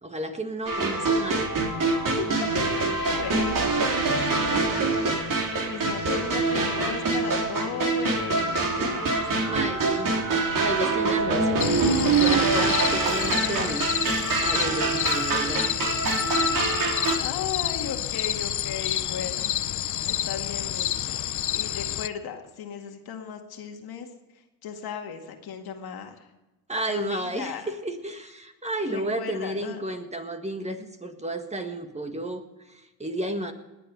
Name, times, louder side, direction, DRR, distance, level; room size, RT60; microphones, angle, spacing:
voice 1, 0.0-1.5 9.5-10.2 10.6-11.7 12.1-13.9 14.4-15.7 26.7-33.5, right 1 dB, 15° right, 6 dB, 1.8 m, -32 dB
sound 1, 0.7-17.2, right 3 dB, 55° right, 3.6 m, -25 dB
voice 2, 1.9-2.5 3.1-5.0 5.7-9.6 16.4-19.5 20.0-24.1 24.6-26.3 26.9-27.7 28.9-29.8, left 7 dB, 70° left, 4 dB, 2.1 m, -36 dB
sound 2, 11.6-22.1, left 12 dB, 50° left, 0.7 m, -29 dB
20.0 x 8.4 x 5.3 m, 1.0 s
supercardioid pair, 75°, 39 cm